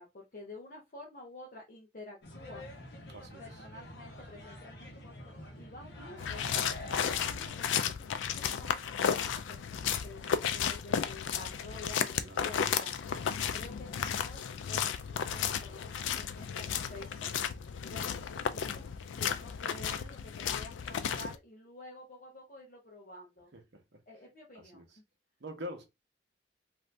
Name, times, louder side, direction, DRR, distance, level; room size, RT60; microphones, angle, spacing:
voice 1, 0.0-2.7 3.4-6.4 7.0-12.9 13.2-17.3 17.9-18.8 19.1-23.5 24.1-24.8, left 2 dB, 45° left, 0.7 m, -50 dB
sound 1, 2.2-7.5, left 1 dB, 65° left, 1.0 m, -46 dB
voice 2, 3.1-3.6 12.2-12.5 23.5-24.0 24.5-25.0 25.4-25.9, equal, 70° right, 0.8 m, -46 dB
sound 2, 6.2-21.4, left 7 dB, 90° left, 0.4 m, -33 dB
2.6 x 2.5 x 3.2 m
head